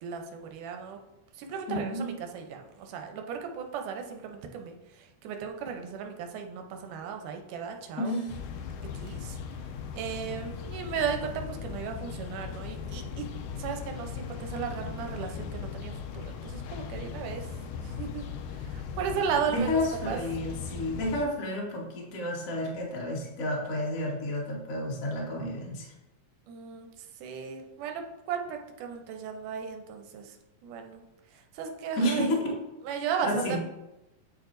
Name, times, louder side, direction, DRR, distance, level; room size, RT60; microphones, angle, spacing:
voice 1, 0.0-1.0 1.3-8.2 8.9-9.4 9.9-13.3 13.6-17.5 17.8-20.2 26.5-30.4 30.6-31.0 31.3-32.3 32.8-33.6, right 7 dB, 80° right, 4 dB, 2.2 m, -35 dB
voice 2, 1.7-2.1 8.0-8.4 19.5-25.9 32.0-32.3 33.2-33.6, left 1 dB, 60° left, -2 dB, 0.8 m, -31 dB
sound 1, 8.3-21.3, left 6 dB, 85° left, 2.1 m, -38 dB
9.0 x 4.6 x 2.6 m, 0.97 s
omnidirectional pair, 3.7 m